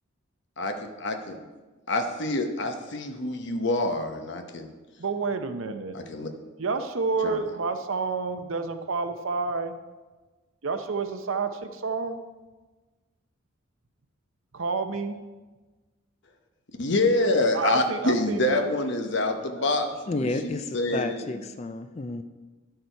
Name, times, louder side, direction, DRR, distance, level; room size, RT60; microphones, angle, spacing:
voice 1, 0.6-1.4 1.9-4.7 5.9-6.3 7.2-7.4 16.8-21.3, left 2 dB, 55° left, 6 dB, 0.9 m, -26 dB
voice 2, 5.0-5.9 6.6-9.8 10.6-12.2 14.5-15.2 17.5-18.7 19.5-19.8, right 4 dB, 65° right, 8 dB, 0.7 m, -29 dB
voice 3, 20.1-22.2, left 2 dB, 30° left, 9 dB, 0.4 m, -31 dB
11.0 x 6.7 x 4.5 m, 1.3 s
head